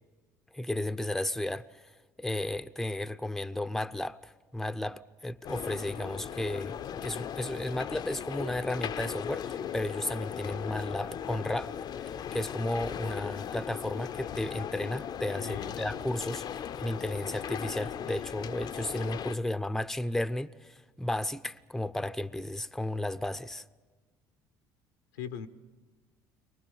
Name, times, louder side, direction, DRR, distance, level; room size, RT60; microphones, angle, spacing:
voice 1, 0.5-1.9 2.2-23.6, left 1 dB, 5° left, 0.6 m, -34 dB
sound 1, 5.4-19.3, left 9 dB, 50° left, 0.6 m, -38 dB
voice 2, 15.4-15.8 25.1-25.5, left 8 dB, 85° left, 0.8 m, -39 dB
24.0 x 19.0 x 7.1 m
hypercardioid pair, 70°, 10 cm